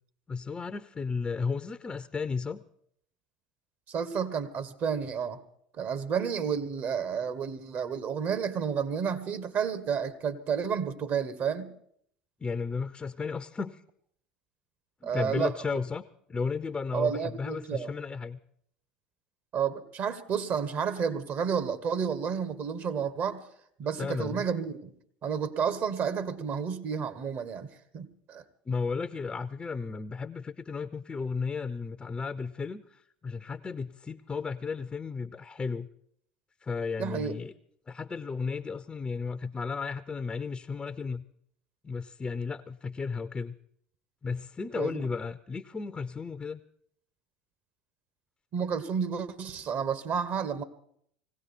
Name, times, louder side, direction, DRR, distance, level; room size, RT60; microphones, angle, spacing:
voice 1, 0.3-2.6 12.4-13.8 15.0-16.0 16.3-18.4 24.0-24.5 28.7-35.9 36.6-37.5 37.9-41.2 41.8-43.5 44.2-46.6, left 5 dB, 20° left, 11 dB, 0.7 m, -34 dB
voice 2, 3.9-5.4 5.8-11.7 15.0-15.5 16.9-17.9 19.5-23.4 23.8-24.9 25.2-28.4 37.0-37.3 44.7-45.0 48.5-50.6, right 7 dB, 45° right, 11 dB, 1.5 m, -31 dB
19.5 x 16.5 x 4.4 m, 0.67 s
hypercardioid pair, 75°, 4 cm